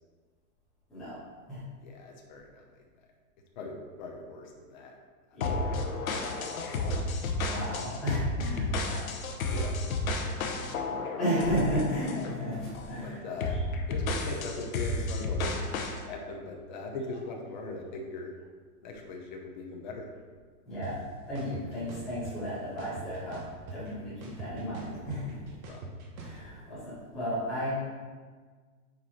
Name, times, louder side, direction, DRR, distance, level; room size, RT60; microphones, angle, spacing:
voice 1, 1.8-2.9 3.6-5.0 5.5-5.9 6.7-6.8 9.5-9.9 10.7-11.1 13.0-13.5 13.9-15.6 16.1-18.3 18.8-20.1 25.7-25.8, left 3 dB, 30° left, 1 dB, 0.8 m, -40 dB
sound 1, 5.4-12.4 12.7-13.0 13.4-16.0, left 2 dB, 65° left, 1.0 m, -32 dB
voice 2, 7.4-9.0 10.8-13.2 20.7-23.4 23.7-25.4 26.2-27.7, equal, ahead, -15 dB, 0.5 m, -33 dB
sound 2, 20.8-20.9 21.3-22.3 22.8-23.9 24.2-26.4, right 3 dB, 65° right, 1.5 m, -42 dB
7.5 x 4.6 x 4.2 m, 1.5 s
hypercardioid pair, 175°, 46 cm